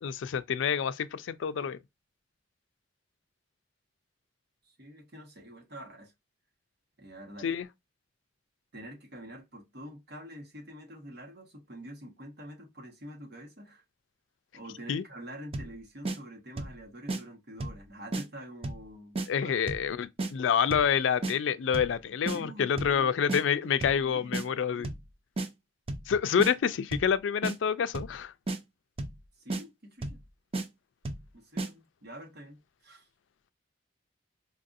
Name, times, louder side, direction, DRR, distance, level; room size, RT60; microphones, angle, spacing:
voice 1, 0.0-1.8 7.4-7.7 14.9-15.0 19.3-24.9 26.1-28.3, left 7 dB, 85° left, 0.4 m, -28 dB
voice 2, 4.6-6.1 7.0-7.5 8.7-13.8 14.5-19.6 22.3-24.3 24.7-24.9 29.4-30.2 31.3-33.1, equal, 60° right, 1.3 m, -46 dB
sound 1, 15.5-15.8 16.0-16.2 16.6-16.8 17.1-17.2 17.6-17.8 18.1-18.2 18.6-18.9 19.1-19.3 19.7-19.9 20.2-20.3 20.7-20.9 21.2-21.3 21.7-22.0 22.3-22.4 22.8-23.0 23.3-23.4 23.8-24.0 24.3-24.4 24.8-25.1 25.4-25.5 25.9-26.1 26.4-26.5 26.9-27.1 27.4-27.6 27.9-28.2 28.5-28.6 29.0-29.2 29.5-29.6 30.0-30.2 30.5-30.7 31.0-31.3 31.6-31.7, right 2 dB, 30° right, 0.5 m, -33 dB
4.5 x 2.5 x 2.5 m
head